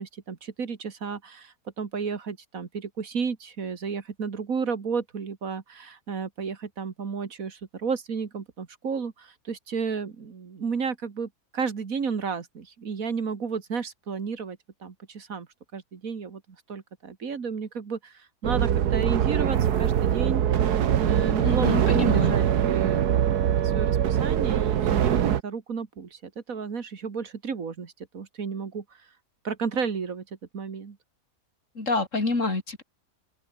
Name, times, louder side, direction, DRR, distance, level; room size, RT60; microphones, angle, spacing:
voice 1, 0.0-15.5 15.7-16.4 16.7-21.8 22.1-23.2 23.6-28.8 29.4-30.2 30.5-31.0, right 5 dB, 60° right, 2.2 m, -32 dB
sound 1, 18.4-25.4, right 9 dB, 80° right, 1.6 m, -23 dB
voice 2, 21.4-22.4 31.8-32.8, left 3 dB, 50° left, 3.9 m, -27 dB
open air
omnidirectional pair, 1.7 m